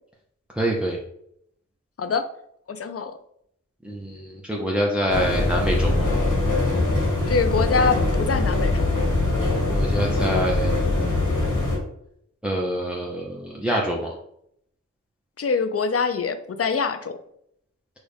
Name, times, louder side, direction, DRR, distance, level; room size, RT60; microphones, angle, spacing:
voice 1, 0.6-1.0 3.8-6.1 9.5-10.8 12.4-14.2, right 1 dB, 5° right, -2 dB, 0.7 m, -26 dB
voice 2, 2.7-3.2 7.3-8.9 15.4-17.2, left 4 dB, 50° left, 9 dB, 0.6 m, -24 dB
sound 1, 5.1-11.8, left 2 dB, 80° left, 1.8 m, -22 dB
6.3 x 2.4 x 3.4 m, 0.72 s
cardioid pair, 55°, 30 cm